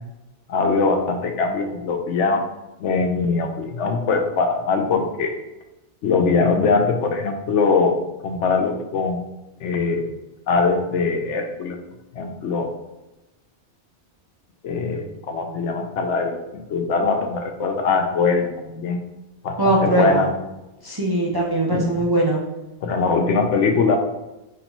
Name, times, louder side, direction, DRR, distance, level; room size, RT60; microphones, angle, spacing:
voice 1, 0.5-2.4 2.8-5.3 6.0-7.9 8.2-9.2 9.6-10.0 10.5-11.8 12.1-12.7 14.6-19.0 19.4-20.4 21.7-22.0 22.8-24.0, left 4 dB, 90° left, 5 dB, 1.0 m, -22 dB
voice 2, 19.6-20.3 20.8-22.4, right 1 dB, 35° right, -3 dB, 0.4 m, -20 dB
5.3 x 3.2 x 3.0 m, 1.0 s
omnidirectional pair, 1.2 m